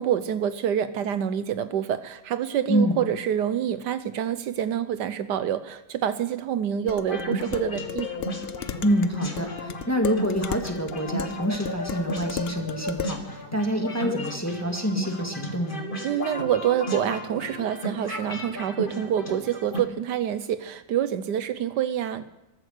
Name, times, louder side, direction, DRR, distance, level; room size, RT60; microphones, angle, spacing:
voice 1, 0.0-8.1 16.0-22.3, right 9 dB, 75° right, 12 dB, 1.3 m, -27 dB
voice 2, 2.7-3.0 8.8-15.8, equal, 10° left, 3 dB, 1.8 m, -26 dB
Dishes pots and pans, 6.9-13.2, left 9 dB, 70° left, 0.5 m, -36 dB
sound 1, 7.0-19.8, equal, 30° left, 2.0 m, -34 dB
14.5 x 13.0 x 6.5 m, 1.0 s
omnidirectional pair, 1.9 m